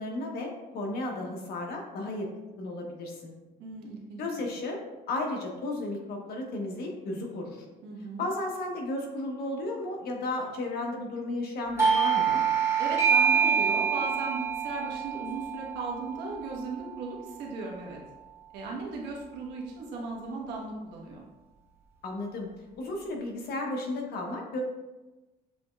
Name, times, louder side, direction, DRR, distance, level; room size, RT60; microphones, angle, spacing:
voice 1, 0.0-2.3 2.6-3.3 4.2-4.8 5.1-7.6 8.2-12.4 22.0-22.5 22.8-24.6, left 2 dB, 65° left, 1 dB, 1.0 m, -34 dB
voice 2, 3.6-4.2 7.8-8.3 12.8-18.0 18.5-21.2, right 3 dB, 90° right, -1 dB, 1.1 m, -37 dB
Doorbell, 11.8-17.1, right 7 dB, 15° right, 1.5 m, -26 dB
6.8 x 3.0 x 2.3 m, 1.1 s
cardioid pair, 110°, 17 cm